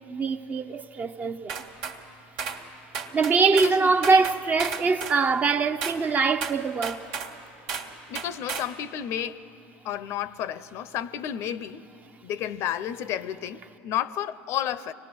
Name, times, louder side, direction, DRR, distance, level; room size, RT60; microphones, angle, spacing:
voice 1, 0.1-1.6 3.1-7.1, right 4 dB, 30° right, 0.7 m, -23 dB
sound 1, 1.5-2.0 2.4-2.6 2.9-3.8 4.0-5.2 5.8-6.0 6.4-7.3 7.7-8.7, right 6 dB, 75° right, 1.6 m, -33 dB
voice 2, 3.5-3.9 8.1-9.4 9.8-11.8 12.2-14.9, left 10 dB, 55° left, 0.6 m, -31 dB
25.0 x 19.0 x 6.1 m
supercardioid pair, 95°, 5 cm